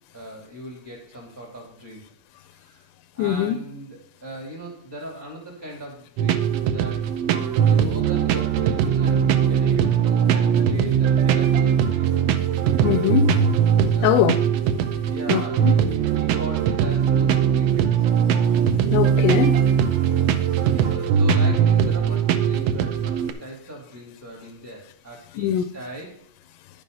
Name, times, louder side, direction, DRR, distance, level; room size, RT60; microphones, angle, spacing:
voice 1, 0.1-2.0 2.4-2.9 3.1-7.1 7.6-12.1 13.9-14.5 15.1-18.1 20.2-26.2, equal, 5° right, 2.3 m, -38 dB
voice 2, 3.2-3.6 12.8-13.3 14.0-14.3 15.3-15.7 18.9-19.6 25.4-25.6, left 11 dB, 85° left, 2.1 m, -21 dB
sound 1, 6.2-23.3, right 8 dB, 85° right, 1.4 m, -20 dB
11.0 x 5.2 x 5.4 m
omnidirectional pair, 3.7 m